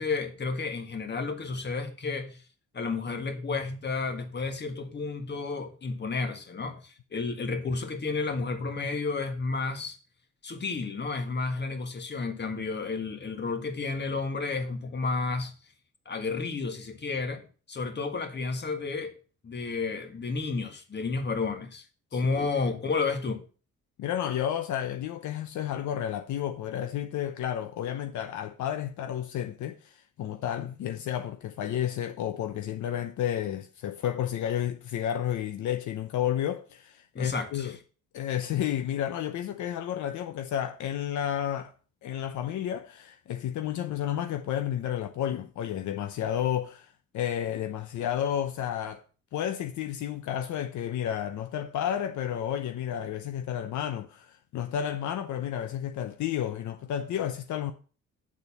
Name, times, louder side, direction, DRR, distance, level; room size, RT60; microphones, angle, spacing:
voice 1, 0.0-2.4 2.7-10.0 10.4-15.5 16.0-19.1 19.4-21.8 22.1-23.4 37.1-37.7, left 4 dB, 35° left, 1.6 m, -31 dB
voice 2, 22.1-22.5 24.0-37.7 38.1-41.7 42.0-49.0 49.3-57.7, left 10 dB, 75° left, 0.8 m, -31 dB
8.5 x 4.1 x 7.1 m
cardioid pair, 90°, 30 cm